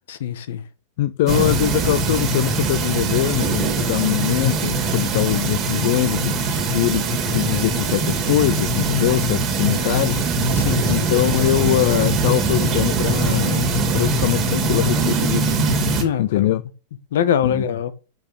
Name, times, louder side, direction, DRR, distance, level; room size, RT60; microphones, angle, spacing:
voice 1, 0.1-0.6 10.6-11.1 16.0-16.5 17.1-17.9, left 9 dB, 70° left, 1.3 m, -23 dB
voice 2, 1.0-6.4 6.7-10.3 10.9-15.6 16.2-16.6 17.4-17.7, left 14 dB, 50° left, 0.5 m, -22 dB
sound 1, 1.3-16.0, right 3 dB, 20° right, 2.1 m, -22 dB
6.9 x 5.5 x 6.7 m
supercardioid pair, 170°, 0 cm